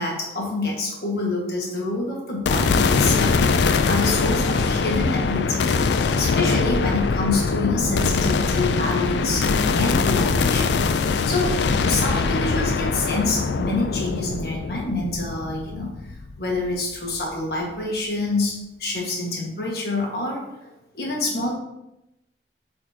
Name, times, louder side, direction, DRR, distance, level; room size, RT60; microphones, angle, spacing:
voice 1, 0.0-5.7 6.1-10.8 11.2-15.9 16.4-21.5, left 2 dB, 60° left, -1 dB, 1.7 m, -27 dB
sound 1, 2.4-16.7, left 4 dB, 75° left, 0.4 m, -22 dB
8.8 x 4.3 x 2.9 m, 0.89 s
head